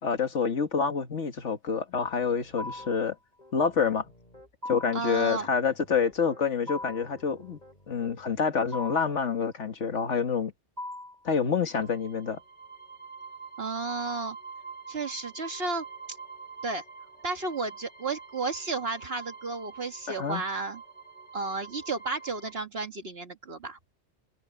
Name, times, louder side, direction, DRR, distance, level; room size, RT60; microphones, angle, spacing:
voice 1, 0.0-3.2 3.5-4.1 4.7-7.6 7.9-10.5 11.3-12.4 20.1-20.4, left 6 dB, 90° left, 1.9 m, -27 dB
Piano, 1.9-3.0 3.4-4.5 5.2-8.4, left 1 dB, 40° left, 7.6 m, -54 dB
sound 1, 2.6-3.1 4.6-5.1 6.7-7.2 8.7-9.2 10.8-11.3, left 1 dB, 35° right, 5.4 m, -38 dB
voice 2, 4.9-5.5 13.6-14.4 14.9-16.2 16.6-16.8 17.2-20.8 21.3-23.8, right 3 dB, 60° right, 1.7 m, -33 dB
sound 2, 11.7-22.5, right 5 dB, 10° left, 1.9 m, -46 dB
omnidirectional pair, 1.2 m